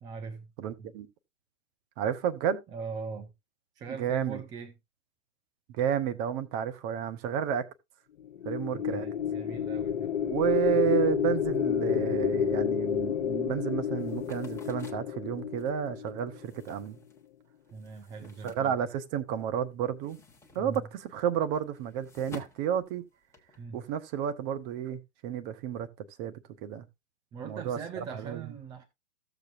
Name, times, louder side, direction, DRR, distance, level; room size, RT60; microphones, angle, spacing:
voice 1, 0.0-0.5 0.8-0.9 2.7-3.3 3.8-4.7 8.7-10.1 17.7-18.8 20.6-20.9 23.6-23.8 27.3-28.8, right 5 dB, 10° right, 0.5 m, -41 dB
voice 2, 0.6-1.1 2.0-2.6 4.0-4.4 5.7-7.7 8.4-9.0 10.2-17.0 18.4-20.2 20.5-23.0 23.7-25.9 26.2-26.3 26.6-26.9 27.4-28.4, right 9 dB, 30° right, 0.9 m, -31 dB
sound 1, 8.2-16.7, left 9 dB, 60° left, 0.7 m, -30 dB
sound 2, 14.0-19.4 19.7-23.6, left 3 dB, 5° left, 1.2 m, -52 dB
14.5 x 7.1 x 2.5 m
hypercardioid pair, 125°, 39 cm